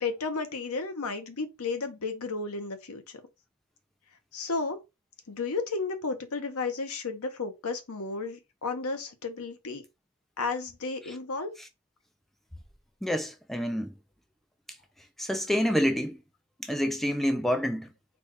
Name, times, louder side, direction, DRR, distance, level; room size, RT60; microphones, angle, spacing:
voice 1, 0.0-3.2 4.3-4.8 5.3-9.8 10.4-11.5, left 4 dB, 85° left, 0.9 m, -33 dB
voice 2, 13.0-13.9 15.2-16.2 16.6-17.9, equal, ahead, 0.4 m, -27 dB
4.1 x 2.3 x 4.5 m
head